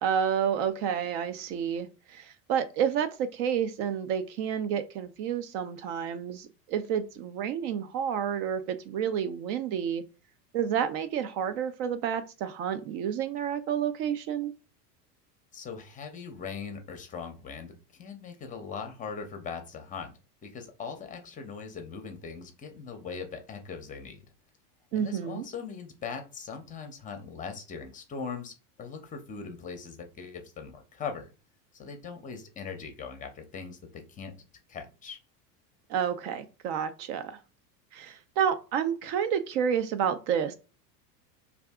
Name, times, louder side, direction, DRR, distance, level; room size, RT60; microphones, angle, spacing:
voice 1, 0.0-10.0 10.5-14.5 24.9-25.5 35.9-37.4 37.9-40.5, right 8 dB, 50° right, 0.5 m, -30 dB
voice 2, 15.5-17.7 18.0-20.1 20.4-24.2 24.9-31.3 31.7-34.3 34.7-35.2, left 5 dB, 15° left, 0.6 m, -40 dB
2.6 x 2.4 x 3.4 m
supercardioid pair, 110°, 48 cm